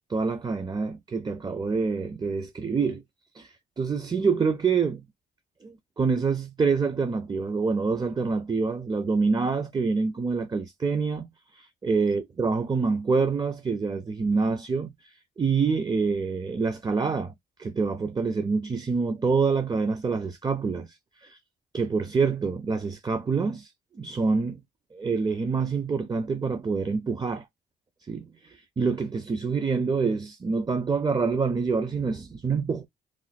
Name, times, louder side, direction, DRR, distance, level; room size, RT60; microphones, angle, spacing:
voice 1, 0.1-3.0 3.3-5.0 5.6-17.3 17.6-21.0 21.2-21.4 21.7-23.7 24.0-24.6 24.9-27.4 28.1-32.8, right 4 dB, 20° right, 0.5 m, -26 dB
3.1 x 2.2 x 4.0 m
cardioid pair, 90°, 20 cm